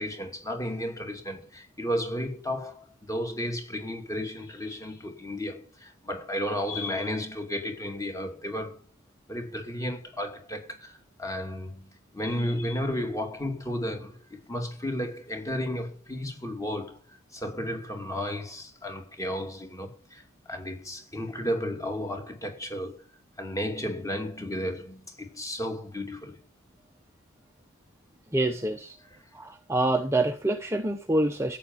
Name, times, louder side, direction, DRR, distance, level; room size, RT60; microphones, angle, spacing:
voice 1, 0.0-8.8 9.3-23.0 23.4-26.4, equal, 15° left, 2.6 m, -33 dB
voice 2, 28.3-29.0 29.3-31.6, right 2 dB, 10° right, 0.8 m, -26 dB
14.0 x 9.3 x 5.5 m
head